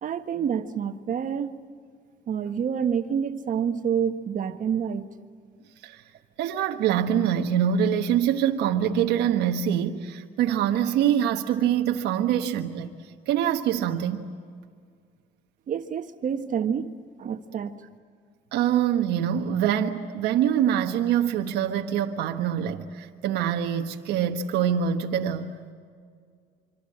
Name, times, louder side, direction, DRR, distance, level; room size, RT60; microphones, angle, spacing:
voice 1, 0.0-1.6 2.3-5.1 15.7-17.8, right 7 dB, 50° right, 1.5 m, -28 dB
voice 2, 6.4-12.9 13.3-14.3 18.5-25.7, right 9 dB, 85° right, 1.4 m, -24 dB
26.0 x 25.5 x 8.7 m
cardioid pair, 110°, 17 cm